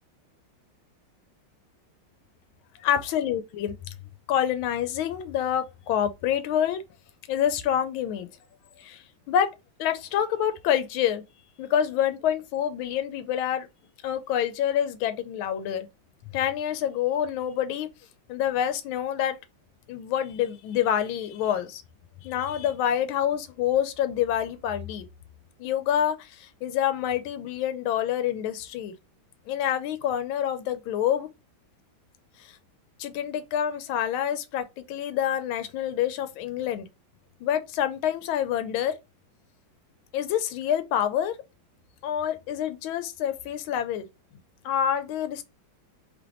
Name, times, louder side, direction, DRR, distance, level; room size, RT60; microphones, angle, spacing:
voice 1, 2.8-3.7 4.3-6.8 7.3-8.3 8.8-9.5 9.8-11.2 11.6-13.7 14.0-15.9 16.3-17.9 18.3-19.4 19.9-21.8 22.2-25.1 25.6-28.9 29.5-31.3 32.4-32.6 33.0-36.9 37.4-39.0 40.1-41.4 42.0-44.1 44.6-45.4, left 10 dB, 85° left, 1.4 m, -27 dB
3.5 x 3.2 x 3.6 m
omnidirectional pair, 2.2 m